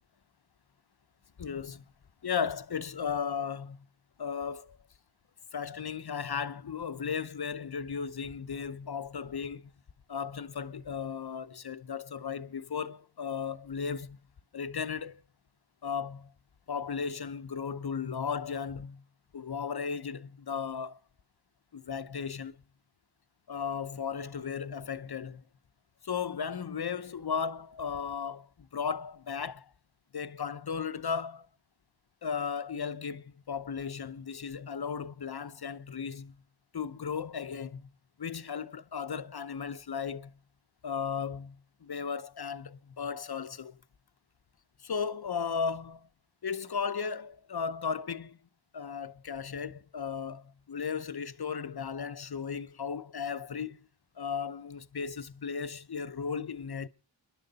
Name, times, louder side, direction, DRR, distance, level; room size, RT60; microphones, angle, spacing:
voice 1, 1.4-1.8 2.2-3.8 4.2-4.8 5.5-9.7 10.1-14.2 14.5-15.2 15.8-16.3 16.7-19.0 19.3-21.0 21.7-22.6 23.5-25.4 26.0-29.7 30.1-31.5 32.2-36.4 36.7-37.9 38.2-40.3 40.8-43.8 44.8-46.1 46.4-48.4 48.7-53.8 54.2-56.9, left 6 dB, 50° left, 0.8 m, -35 dB
30.0 x 11.0 x 4.0 m
wide cardioid pair, 65°, 48 cm